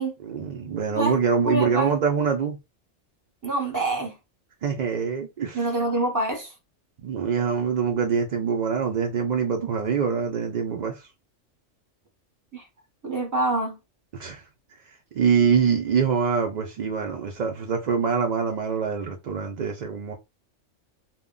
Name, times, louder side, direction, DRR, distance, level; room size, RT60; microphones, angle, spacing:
voice 1, 0.2-2.6 4.6-5.7 7.0-11.1 14.1-14.4 14.9-20.1, right 6 dB, 80° right, 0.4 m, -24 dB
voice 2, 1.4-2.0 3.4-4.2 5.5-6.5 12.5-12.6 13.0-13.8, right 2 dB, 20° right, 0.7 m, -26 dB
2.2 x 2.1 x 3.6 m
omnidirectional pair, 1.3 m